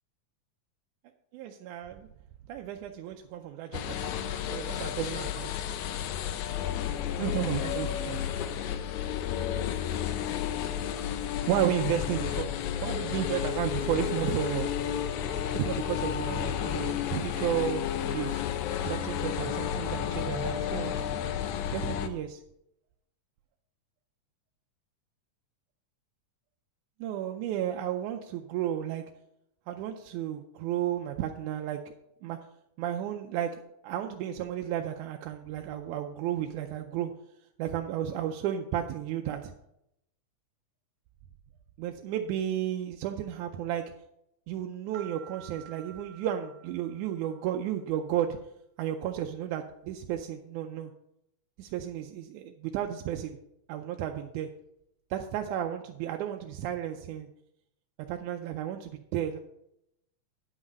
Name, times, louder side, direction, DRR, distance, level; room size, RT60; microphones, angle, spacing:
voice 1, 1.3-2.1 2.5-5.5 7.1-8.2 11.5-12.5 12.8-14.7 15.5-18.4 18.8-20.9 21.7-22.4 27.0-29.0 29.7-31.8 32.2-32.4 32.8-33.5 33.8-37.1 37.6-39.5 41.8-43.8 44.5-48.4 48.8-50.9 51.6-53.4 53.7-54.5 55.1-57.3 58.1-59.4, right 11 dB, 80° right, 4 dB, 2.0 m, -33 dB
sound 1, 3.7-22.1, left 9 dB, 75° left, 1.9 m, -32 dB
sound 2, 44.9-47.6, right 10 dB, 65° right, 1.3 m, -50 dB
9.7 x 6.2 x 5.2 m, 0.80 s
omnidirectional pair, 3.6 m